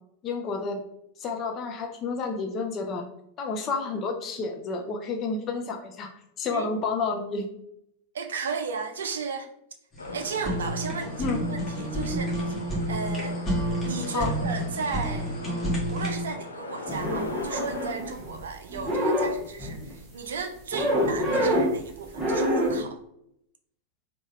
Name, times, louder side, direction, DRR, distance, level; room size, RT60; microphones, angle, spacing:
voice 1, 0.2-0.8 1.2-3.1 3.4-6.1 6.4-7.5 11.2-11.4 14.1-14.3, left 4 dB, 30° left, 4 dB, 0.5 m, -30 dB
voice 2, 8.1-9.5 10.1-12.6 12.9-13.4 13.8-15.4 15.9-23.0, right 5 dB, 65° right, 6 dB, 0.4 m, -35 dB
Fire, 9.9-16.2, right 1 dB, 15° left, 1.3 m, -30 dB
sound 1, 10.0-17.9, left 3 dB, 75° left, 0.4 m, -40 dB
sound 2, 16.9-18.4 18.7-20.0 20.7-21.8 22.1-22.8, equal, 15° right, 1.2 m, -26 dB
3.5 x 2.4 x 3.5 m, 0.75 s
figure-of-eight pair, 90°, 0 cm